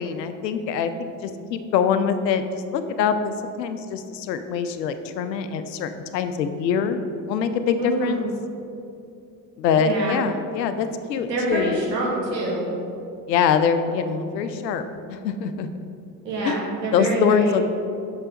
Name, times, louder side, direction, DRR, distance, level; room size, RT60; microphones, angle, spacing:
voice 1, 0.0-7.0 7.3-8.2 9.6-11.8 13.3-14.8 15.1-15.7 16.4-16.6 16.9-17.6, left 6 dB, 85° left, 9 dB, 0.6 m, -24 dB
voice 2, 7.8-8.3 9.8-10.2 11.3-12.6 16.2-17.6, right 1 dB, 90° right, -3 dB, 1.3 m, -26 dB
6.2 x 5.4 x 4.8 m, 2.6 s
figure-of-eight pair, 55°, 49 cm